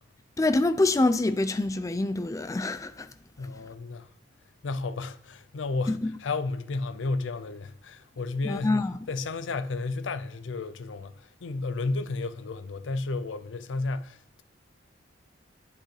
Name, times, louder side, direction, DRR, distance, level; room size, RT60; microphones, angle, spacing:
voice 1, 0.4-3.1 5.9-6.1 8.4-8.9, left 2 dB, 15° left, 0.3 m, -25 dB
voice 2, 3.4-4.1 4.6-8.8 9.1-14.4, left 3 dB, 70° left, 0.5 m, -32 dB
8.7 x 6.2 x 3.3 m
head